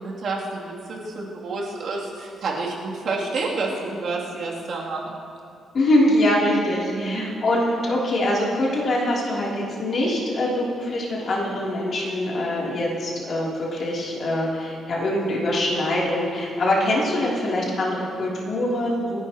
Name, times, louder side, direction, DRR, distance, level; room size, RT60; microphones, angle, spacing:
voice 1, 0.0-5.1 6.9-7.2, right 3 dB, 60° right, -4 dB, 2.8 m, -29 dB
voice 2, 5.7-19.2, left 1 dB, 45° left, -5 dB, 3.1 m, -23 dB
28.5 x 10.5 x 3.0 m, 2.4 s
cardioid pair, 145°, 0 cm